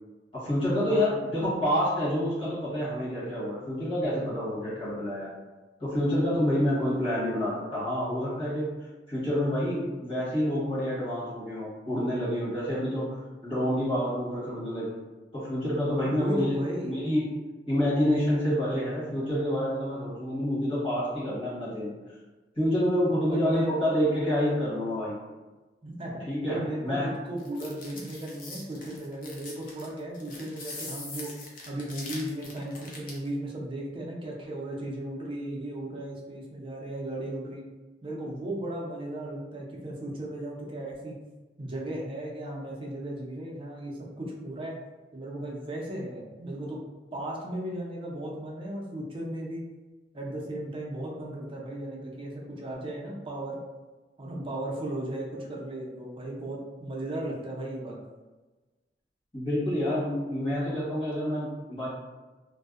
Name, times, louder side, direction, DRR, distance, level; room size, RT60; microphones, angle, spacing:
voice 1, 0.3-5.3 5.8-8.7 9.1-15.0 15.3-16.6 16.8-17.2 17.7-21.9 22.6-25.2 26.3-27.1 59.3-61.9, equal, 30° left, -10 dB, 1.2 m, -28 dB
voice 2, 0.9-1.3 16.0-17.0 23.0-23.8 25.8-31.3 31.7-37.6 38.0-41.2 41.6-44.8 45.1-46.8 47.1-49.7 50.1-53.6 54.2-58.0, right 1 dB, 30° right, -3 dB, 0.4 m, -36 dB
sound 1, 27.4-33.3, left 2 dB, 50° left, 0.5 m, -42 dB
2.6 x 2.0 x 2.3 m, 1.2 s
head